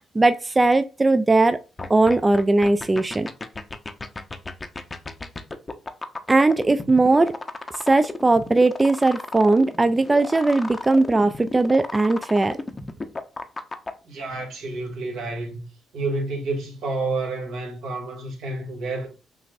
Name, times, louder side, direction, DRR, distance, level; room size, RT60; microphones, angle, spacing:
voice 1, 0.1-1.6 1.9-3.3 6.3-7.3 7.9-12.6, right 2 dB, 20° right, 0.3 m, -19 dB
sound 1, 1.8-13.9, left 3 dB, 25° left, 0.6 m, -33 dB
voice 2, 14.0-15.7 15.9-19.1, right 2 dB, 80° right, 2.1 m, -29 dB
6.0 x 2.5 x 2.5 m
cardioid pair, 90°, 0 cm